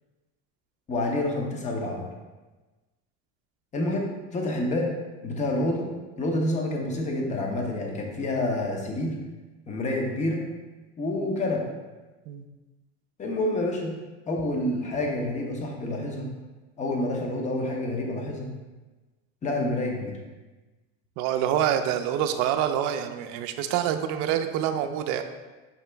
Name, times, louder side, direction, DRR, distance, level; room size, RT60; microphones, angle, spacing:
voice 1, 0.9-2.1 3.7-5.0 5.2-5.9 6.2-9.2 9.7-10.4 11.0-11.6 13.2-14.0 14.3-16.3 16.8-18.5 19.4-20.2, left 1 dB, 25° left, 1 dB, 0.7 m, -28 dB
voice 2, 21.2-25.2, right 10 dB, 65° right, 7 dB, 0.5 m, -26 dB
5.4 x 2.9 x 3.3 m, 1.2 s
cardioid pair, 140°, 31 cm